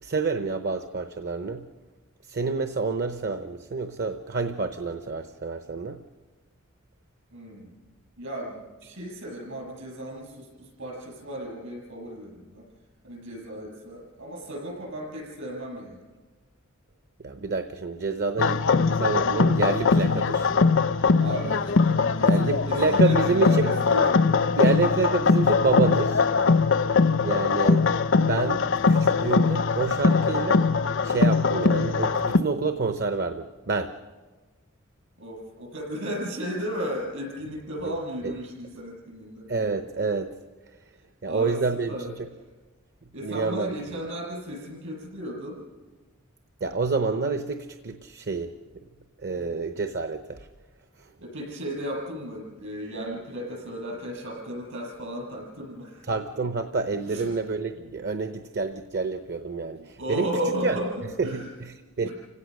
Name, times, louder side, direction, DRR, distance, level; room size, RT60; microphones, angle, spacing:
voice 1, 0.0-1.7 2.3-6.0 17.2-18.6 19.0-20.5 22.2-23.7 24.6-26.3 27.2-27.9 28.2-30.7 31.0-33.9 37.8-38.0 38.2-38.3 39.5-40.3 41.2-42.1 43.2-43.8 46.6-48.5 49.2-50.5 51.0-51.1 56.1-60.3 60.6-60.8 61.2-62.1, right 4 dB, 55° right, 8 dB, 0.9 m, -28 dB
voice 2, 7.3-7.7 8.2-12.7 13.0-16.0 21.2-24.5 35.2-39.5 41.2-42.1 43.1-45.6 49.3-49.6 51.2-56.1 57.1-57.4 59.8-61.5 62.0-62.1, equal, 70° right, -1 dB, 7.1 m, -35 dB
sound 1, 18.4-32.4, left 4 dB, 65° left, 0.6 m, -21 dB
29.5 x 17.0 x 6.5 m, 1.3 s
head